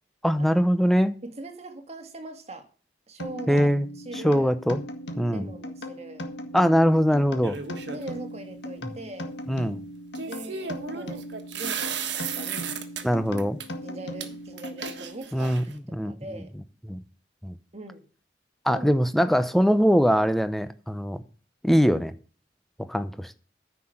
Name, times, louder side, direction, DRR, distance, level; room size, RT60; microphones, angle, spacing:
voice 1, 0.2-1.1 3.5-3.9 4.2-4.8 5.2-5.5 6.5-7.6 9.5-9.8 13.0-13.6 15.3-15.6 15.9-16.1 16.9-17.0 17.4-17.6 18.6-21.2 21.6-22.1 22.8-23.3, equal, ahead, 0.7 m, -22 dB
voice 2, 1.2-2.7 3.1-3.7 4.0-4.5 5.3-6.4 7.9-9.3 10.2-11.3 11.5-12.8 13.8-16.5 17.7-18.1 18.7-18.9, right 2 dB, 35° right, 1.8 m, -41 dB
sound 1, 3.2-15.4, equal, 75° left, 1.7 m, -38 dB
sound 2, 7.4-8.2 10.2-13.0 13.4-13.7 14.2-14.3 14.6-15.8, right 7 dB, 75° right, 1.4 m, -34 dB
9.9 x 5.9 x 7.8 m
head